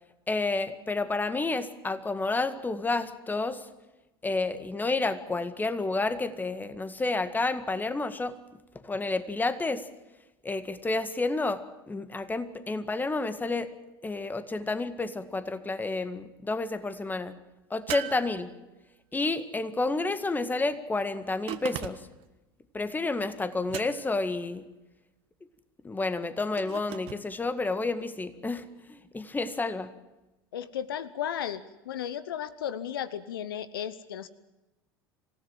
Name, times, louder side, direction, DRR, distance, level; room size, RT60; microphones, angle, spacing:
voice 1, 0.3-3.7 4.2-8.4 8.8-9.8 10.4-13.7 14.0-17.4 17.7-18.5 19.1-22.0 22.7-24.6 25.8-28.6 28.9-29.9, left 3 dB, 15° left, 12 dB, 1.9 m, -30 dB
sound 1, 17.9-19.0 21.5-22.3 23.7-24.3 26.6-27.2, right 13 dB, 50° right, 1.5 m, -38 dB
voice 2, 30.5-34.3, left 9 dB, 75° left, 16 dB, 0.9 m, -34 dB
26.5 x 16.5 x 7.5 m, 1.0 s
hypercardioid pair, 75°, 12 cm